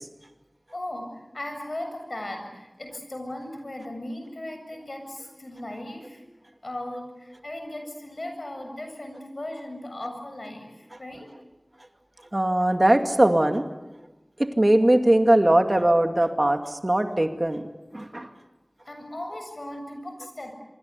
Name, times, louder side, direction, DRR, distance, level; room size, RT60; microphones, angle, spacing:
voice 1, 0.7-6.2 6.6-11.3 18.9-20.5, left 1 dB, 65° left, 4 dB, 7.4 m, -37 dB
voice 2, 12.3-13.6 14.4-17.6 17.9-18.3, right 1 dB, 40° right, 6 dB, 2.3 m, -20 dB
26.5 x 25.0 x 8.4 m, 1.1 s
wide cardioid pair, 45°, 0 cm